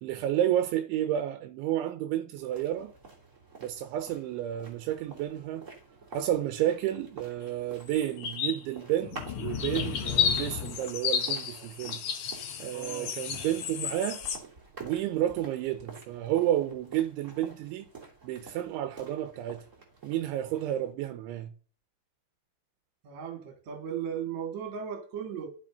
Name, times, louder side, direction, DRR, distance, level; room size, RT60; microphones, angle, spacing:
voice 1, 0.0-2.9 3.6-5.6 6.1-12.0 12.6-14.2 14.8-17.9 18.2-19.6 20.0-21.5, right 12 dB, 80° right, 3.2 m, -31 dB
sound 1, 2.4-20.9, right 4 dB, 20° right, 2.4 m, -49 dB
sound 2, 7.9-8.6 9.0-14.4, left 8 dB, 80° left, 1.7 m, -32 dB
voice 2, 12.7-13.2 23.0-25.5, right 8 dB, 45° right, 3.1 m, -36 dB
12.0 x 8.1 x 5.4 m
omnidirectional pair, 5.5 m